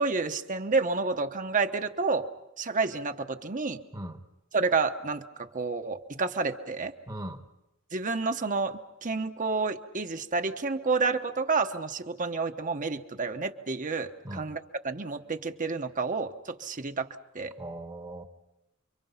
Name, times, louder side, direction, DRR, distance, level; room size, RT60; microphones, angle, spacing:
voice 1, 0.0-2.3 2.6-3.8 4.5-6.9 7.9-14.6 14.8-17.1 17.3-17.5, right 4 dB, 40° right, 7 dB, 1.1 m, -29 dB
voice 2, 7.1-7.4 14.2-14.5 17.6-18.2, right 1 dB, 20° right, 7 dB, 1.2 m, -38 dB
29.0 x 24.0 x 5.8 m, 0.93 s
head